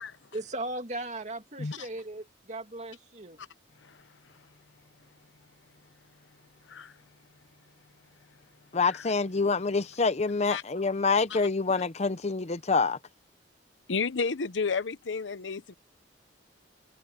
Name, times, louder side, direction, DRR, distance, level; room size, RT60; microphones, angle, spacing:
voice 1, 0.3-3.4, right 2 dB, 40° right, 2.6 m, -37 dB
voice 2, 8.7-13.0, left 4 dB, 40° left, 0.7 m, -26 dB
voice 3, 13.9-15.8, left 4 dB, 85° left, 0.9 m, -32 dB
head